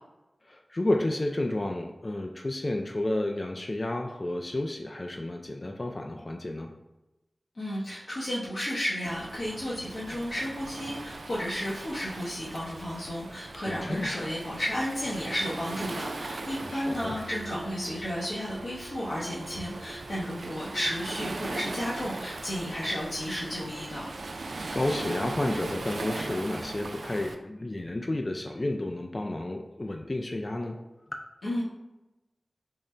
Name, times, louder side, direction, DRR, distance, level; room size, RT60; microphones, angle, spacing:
voice 1, 0.5-6.7 13.7-14.2 16.6-17.1 24.3-24.4 24.7-30.8, left 1 dB, 40° left, 2 dB, 0.3 m, -31 dB
voice 2, 7.5-24.1 31.4-31.6, equal, 75° left, -8 dB, 0.8 m, -33 dB
Waves surf, 9.0-27.4, right 3 dB, 85° right, 0.3 m, -39 dB
Wind instrument woodwind instrument, 17.2-21.5, right 2 dB, 20° right, 0.9 m, -47 dB
3.8 x 2.1 x 4.2 m, 0.99 s
wide cardioid pair, 45°, 0 cm